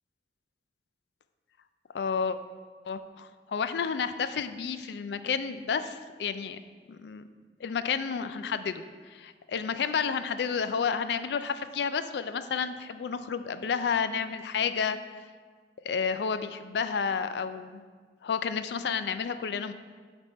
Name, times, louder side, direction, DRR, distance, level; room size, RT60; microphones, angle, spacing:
voice 1, 1.9-2.4 2.9-6.6 6.9-7.2 7.6-8.8 9.1-15.0 15.8-17.8 18.2-19.7, left 6 dB, 70° left, 11 dB, 0.4 m, -31 dB
10.5 x 3.5 x 4.1 m, 1.6 s
head